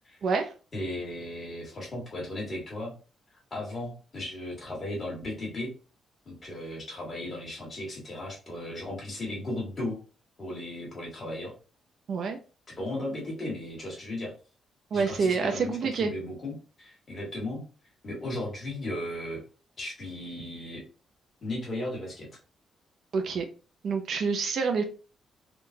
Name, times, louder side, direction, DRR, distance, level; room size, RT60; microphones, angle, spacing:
voice 1, 0.2-0.5 12.1-12.4 14.9-16.1 23.1-23.5 23.8-24.8, right 5 dB, 50° right, 0.4 m, -27 dB
voice 2, 0.7-2.9 3.5-5.7 6.2-10.0 10.4-11.5 12.8-14.3 14.9-17.6 18.0-19.4 19.8-20.8 21.4-22.3, left 1 dB, 25° left, 1.6 m, -36 dB
3.7 x 2.3 x 2.6 m
cardioid pair, 180°, 0 cm